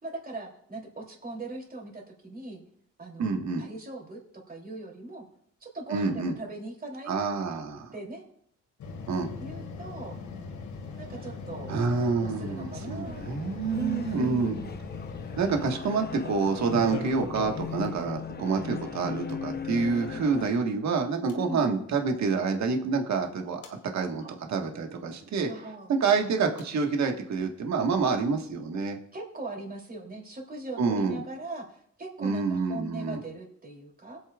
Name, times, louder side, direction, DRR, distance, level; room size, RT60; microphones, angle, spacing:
voice 1, 0.0-2.6 3.0-5.2 5.6-7.1 7.9-8.2 9.4-10.2 11.0-11.7 12.2-13.4 13.7-14.8 15.7-15.8 18.8-19.5 21.3-21.6 24.2-24.3 25.5-26.0 29.1-34.2, right 2 dB, 30° right, 0 dB, 3.1 m, -40 dB
voice 2, 3.2-3.6 5.9-6.3 7.1-7.9 9.1-9.3 11.7-14.6 15.4-25.5 25.9-29.0 30.8-31.2 32.2-33.2, right 4 dB, 65° right, 3 dB, 1.6 m, -27 dB
sound 1, 8.8-15.9 16.6-17.9 19.3-19.4 21.3-21.4 23.2-23.7 26.6-26.7, left 4 dB, 70° left, 2.0 m, -39 dB
sound 2, 13.1-20.5, left 7 dB, 35° left, 0.8 m, -39 dB
21.0 x 8.6 x 2.4 m, 0.70 s
cardioid pair, 90°, 30 cm